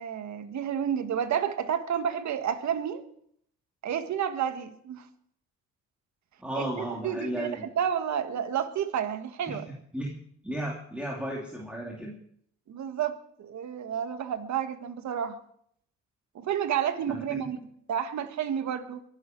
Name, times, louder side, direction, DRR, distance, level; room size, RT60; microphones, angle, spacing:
voice 1, 0.0-3.1 3.8-5.1 6.6-7.5 7.8-9.6 12.7-15.4 16.4-17.6 17.9-19.0, right 8 dB, 65° right, 1.6 m, -30 dB
voice 2, 6.4-7.7 9.5-9.6 9.9-10.1 10.4-12.1 17.1-17.5, right 1 dB, 5° right, 3.1 m, -34 dB
23.0 x 11.0 x 4.6 m
cardioid pair, 90°, 30 cm